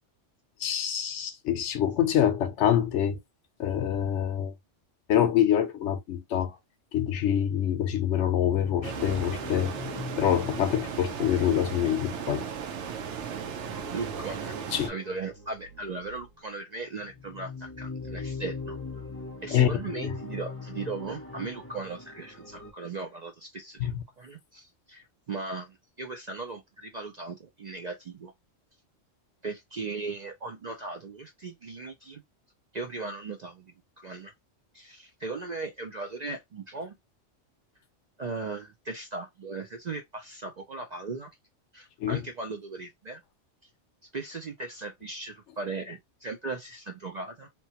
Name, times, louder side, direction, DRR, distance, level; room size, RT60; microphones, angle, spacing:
voice 1, 0.6-3.2 3.6-4.5 5.1-6.6 6.9-12.5 14.7-14.9 19.5-19.8 23.8-23.9 42.0-42.2, left 10 dB, 75° left, 0.9 m, -26 dB
sound 1, 7.9-16.4 17.0-22.7, left 4 dB, 15° left, 0.6 m, -41 dB
sound 2, 8.8-14.9, right 7 dB, 75° right, 0.9 m, -36 dB
voice 2, 13.9-14.5 14.9-18.8 19.4-28.3 29.4-32.2 32.7-34.3 34.7-36.9 38.2-41.3 41.7-43.2 44.1-47.5, right 3 dB, 55° right, 0.5 m, -38 dB
2.9 x 2.2 x 2.8 m
omnidirectional pair, 1.3 m